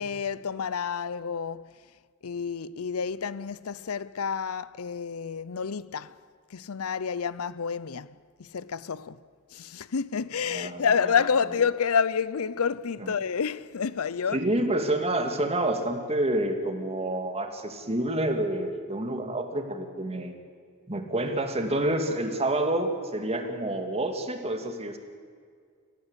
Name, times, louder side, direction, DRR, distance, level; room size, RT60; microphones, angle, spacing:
voice 1, 0.0-1.7 2.2-6.2 6.5-9.2 9.5-14.4, left 6 dB, 85° left, 0.6 m, -29 dB
voice 2, 10.5-10.9 14.3-20.3 20.9-25.0, right 1 dB, 30° right, 2.3 m, -28 dB
29.0 x 15.0 x 8.2 m
head